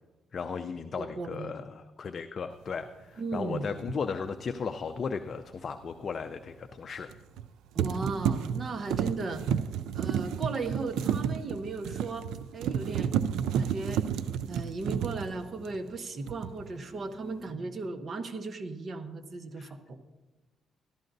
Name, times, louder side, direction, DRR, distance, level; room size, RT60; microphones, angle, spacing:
voice 1, 0.3-7.1 19.6-19.7, left 5 dB, 45° left, 8 dB, 0.4 m, -36 dB
voice 2, 1.0-1.5 3.2-3.7 7.7-9.4 9.9-13.1 13.5-14.1 14.5-20.0, right 3 dB, 45° right, 8 dB, 0.9 m, -36 dB
sound 1, 3.8-4.0 7.1-7.5 7.8-16.0 16.3-16.7, right 8 dB, 85° right, 0.3 m, -31 dB
14.0 x 12.0 x 2.6 m, 1.2 s
cardioid pair, 90°, 0 cm